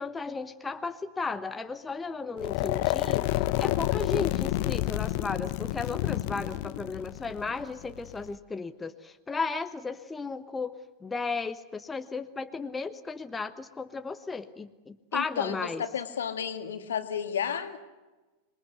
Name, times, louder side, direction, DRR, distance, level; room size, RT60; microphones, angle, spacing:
voice 1, 0.0-3.3 3.6-15.8, left 4 dB, 15° left, 9 dB, 1.2 m, -35 dB
sound 1, 2.4-8.3, left 16 dB, 45° left, 1.0 m, -29 dB
voice 2, 15.1-17.8, left 8 dB, 65° left, 8 dB, 2.2 m, -32 dB
26.5 x 22.5 x 8.2 m, 1.2 s
figure-of-eight pair, 90°, 0 cm